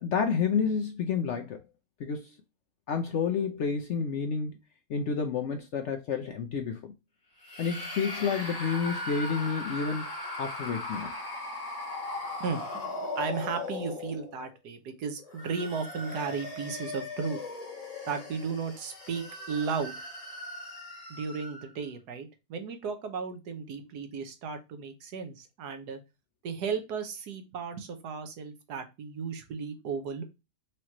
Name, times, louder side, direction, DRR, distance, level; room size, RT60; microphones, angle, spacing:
voice 1, 0.0-1.6 2.0-2.4 2.9-4.5 4.9-6.9 7.6-10.1 10.4-11.1, left 6 dB, 70° left, 0.7 m, -30 dB
High Quality Monster Screech, 7.4-14.5 15.2-21.7, left 2 dB, 25° left, 1.3 m, -38 dB
voice 2, 12.4-17.4 18.1-20.0 21.1-26.0 26.4-30.2, right 5 dB, 80° right, 1.4 m, -35 dB
4.8 x 3.0 x 2.9 m
omnidirectional pair, 1.7 m